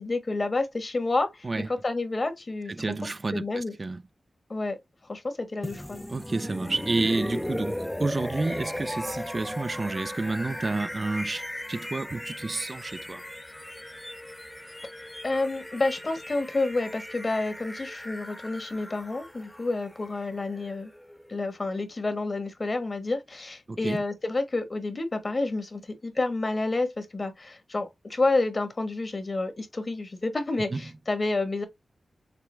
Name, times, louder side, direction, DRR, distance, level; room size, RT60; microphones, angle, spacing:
voice 1, 0.0-2.7 3.3-3.7 4.5-4.8 5.1-6.0 15.2-20.9 21.3-31.7, left 2 dB, 45° left, 1.4 m, -29 dB
voice 2, 2.7-4.0 6.1-13.2 23.7-24.0 30.7-30.8, right 3 dB, 45° right, 0.3 m, -30 dB
sound 1, 5.6-21.5, left 1 dB, 10° left, 0.5 m, -37 dB
6.7 x 2.3 x 3.3 m
cardioid pair, 55°, 0 cm